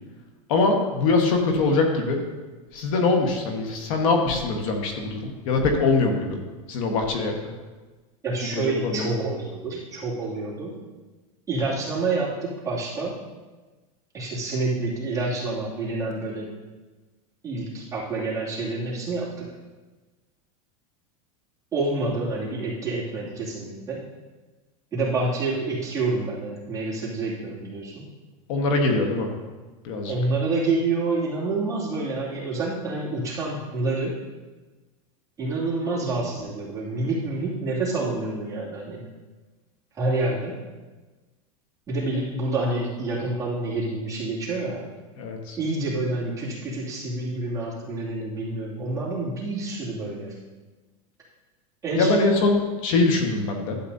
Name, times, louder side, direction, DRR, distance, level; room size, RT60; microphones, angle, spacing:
voice 1, 0.5-2.3 2.7-6.4 6.7-7.4 8.4-9.2 28.5-29.3 29.8-30.1 45.2-45.6 51.9-53.7, left 3 dB, 65° left, 3 dB, 1.4 m, -23 dB
voice 2, 8.2-10.8 11.5-13.1 14.1-16.5 17.4-19.5 21.7-24.0 24.9-28.0 30.1-34.1 35.4-39.1 39.9-40.6 41.9-44.8 45.6-50.3 51.8-52.3, right 3 dB, 15° right, -7 dB, 2.5 m, -28 dB
12.0 x 8.3 x 2.7 m, 1.3 s
supercardioid pair, 155°, 18 cm